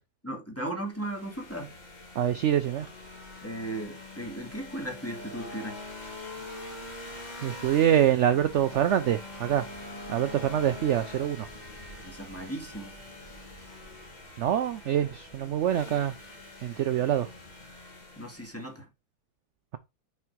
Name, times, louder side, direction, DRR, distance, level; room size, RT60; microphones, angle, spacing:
voice 1, 0.2-1.7 3.4-5.8 12.0-12.9 18.2-18.9, right 1 dB, 10° left, 1.8 m, -36 dB
sound 1, 0.9-18.7, left 2 dB, 25° left, 1.8 m, -44 dB
voice 2, 2.2-2.9 7.4-9.7 10.1-11.5 14.4-16.1 16.6-17.3, right 10 dB, 65° right, 0.7 m, -25 dB
6.0 x 4.5 x 4.6 m
omnidirectional pair, 1.7 m